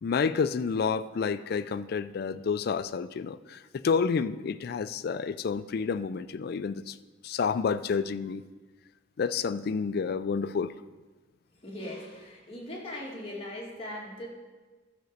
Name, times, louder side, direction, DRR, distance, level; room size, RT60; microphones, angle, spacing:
voice 1, 0.0-7.0 7.2-8.4 9.2-10.7, left 5 dB, 55° left, 0.3 m, -29 dB
voice 2, 11.6-14.3, left 1 dB, 30° left, 2.1 m, -39 dB
12.0 x 5.1 x 6.6 m
head